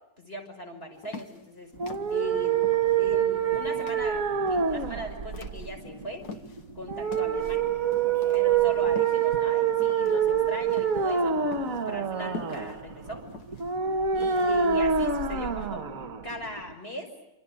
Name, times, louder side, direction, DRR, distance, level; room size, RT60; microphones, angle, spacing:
voice 1, 0.2-1.8 2.1-2.6 3.0-6.3 6.7-7.7 8.3-11.4 11.7-13.2 14.1-15.9 16.2-17.1, equal, 30° left, 3 dB, 6.1 m, -39 dB
sound 1, 1.0-6.7 7.1-14.8, left 4 dB, 60° left, 1.8 m, -45 dB
sound 2, 1.7-16.7, right 7 dB, 50° right, 1.6 m, -26 dB
28.5 x 27.0 x 7.7 m, 0.89 s
omnidirectional pair, 1.9 m